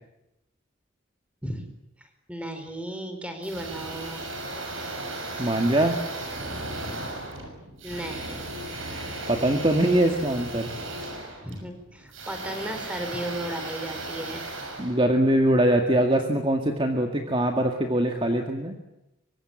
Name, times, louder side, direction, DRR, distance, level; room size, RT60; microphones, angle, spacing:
voice 1, 2.3-4.2 5.3-5.5 7.8-8.5 11.4-14.4, right 1 dB, 5° right, 7 dB, 4.3 m, -35 dB
sound 1, 3.4-15.6, right 2 dB, 80° right, 6.5 m, -36 dB
voice 2, 5.4-6.0 9.3-10.7 14.8-18.8, right 1 dB, 25° right, 4 dB, 2.0 m, -22 dB
25.0 x 24.0 x 8.8 m, 0.91 s
head